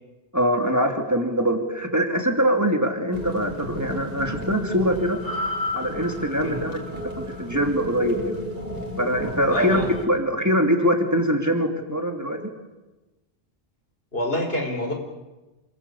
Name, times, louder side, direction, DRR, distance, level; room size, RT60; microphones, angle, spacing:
voice 1, 0.3-5.2 5.7-6.8 7.2-8.4 9.0-12.4, equal, 15° right, 3 dB, 2.8 m, -23 dB
sound 1, 3.1-10.1, left 1 dB, 50° right, 4.3 m, -32 dB
voice 2, 9.5-9.9 14.1-14.9, equal, 65° left, 3 dB, 5.1 m, -26 dB
28.0 x 21.0 x 8.6 m, 1.1 s
omnidirectional pair, 1.1 m